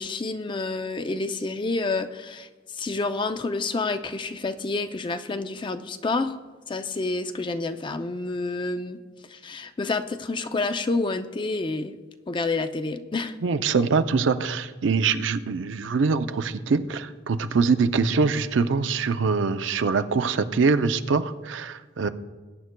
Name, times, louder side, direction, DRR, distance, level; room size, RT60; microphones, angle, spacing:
voice 1, 0.0-6.4 6.7-9.0 9.3-11.9 12.3-13.4, left 3 dB, 25° left, 9 dB, 0.4 m, -29 dB
voice 2, 13.4-22.1, right 4 dB, 75° right, 10 dB, 0.5 m, -23 dB
21.5 x 9.3 x 2.2 m, 1.3 s
head